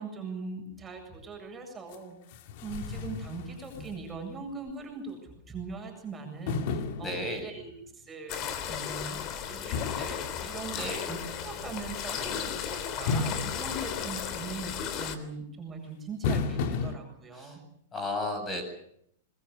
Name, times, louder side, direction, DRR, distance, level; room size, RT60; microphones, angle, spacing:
voice 1, 0.0-2.2 2.6-9.2 9.4-11.2 11.4-17.6, right 4 dB, 15° right, 3 dB, 7.7 m, -41 dB
sound 1, 1.9-2.0 2.3-4.4 4.7-4.8 6.5-7.8 9.7-11.1 13.1-14.6 16.2-17.0, left 4 dB, 55° left, 2.4 m, -34 dB
voice 2, 7.0-7.5 10.7-11.1 17.3-17.6 17.9-18.6, left 1 dB, 20° left, 6 dB, 7.8 m, -33 dB
sound 2, 8.3-15.2, left 8 dB, 40° left, 3.3 m, -35 dB
26.0 x 22.0 x 6.8 m, 0.70 s
hypercardioid pair, 135°, 0 cm